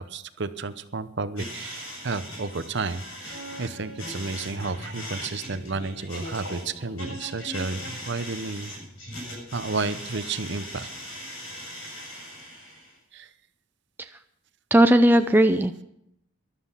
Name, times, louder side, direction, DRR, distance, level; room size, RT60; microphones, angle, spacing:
voice 1, 0.0-8.7 9.5-10.9 13.1-13.3, right 3 dB, 55° right, 12 dB, 0.8 m, -32 dB
sound 1, 1.4-13.0, equal, 90° left, 7.5 m, -39 dB
voice 2, 14.7-15.8, right 1 dB, 10° right, 7 dB, 0.4 m, -17 dB
13.0 x 12.0 x 5.7 m, 0.76 s
head